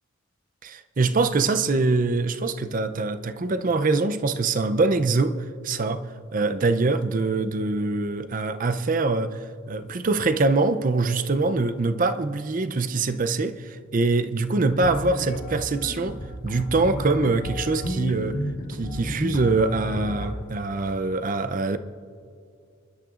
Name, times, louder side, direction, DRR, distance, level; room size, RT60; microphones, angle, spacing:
voice 1, 0.6-18.4 18.7-21.8, right 3 dB, 40° right, 0.5 m, -24 dB
sound 1, 14.7-20.4, equal, 70° left, 2.8 m, -32 dB
26.5 x 12.0 x 2.5 m
head